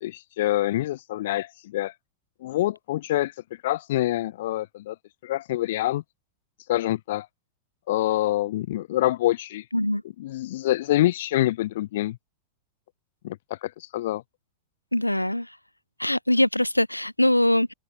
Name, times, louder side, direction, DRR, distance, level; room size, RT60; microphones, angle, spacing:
voice 1, 0.0-1.9 2.4-3.3 3.6-4.9 5.2-6.0 6.7-7.3 7.9-9.6 10.2-12.2 13.2-14.2, left 15 dB, 55° left, 1.1 m, -26 dB
voice 2, 14.9-15.5 16.0-17.7, left 1 dB, 85° left, 0.6 m, -22 dB
open air
figure-of-eight pair, 90°, 0 cm